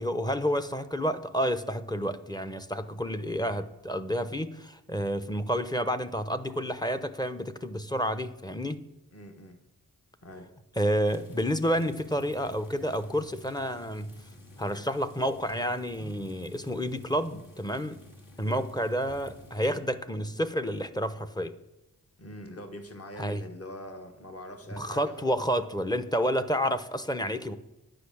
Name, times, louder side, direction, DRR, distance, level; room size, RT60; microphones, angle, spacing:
voice 1, 0.0-8.8 10.8-14.1 14.6-18.0 18.4-21.5 23.2-23.4 24.7-27.5, equal, 10° left, 11 dB, 0.8 m, -30 dB
voice 2, 9.1-9.6 10.2-10.5 18.4-18.6 22.2-25.4, left 1 dB, 40° left, 5 dB, 1.5 m, -43 dB
sound 1, 11.0-19.8, left 1 dB, 60° left, 2.1 m, -50 dB
10.0 x 5.6 x 8.5 m, 0.96 s
wide cardioid pair, 75°, 37 cm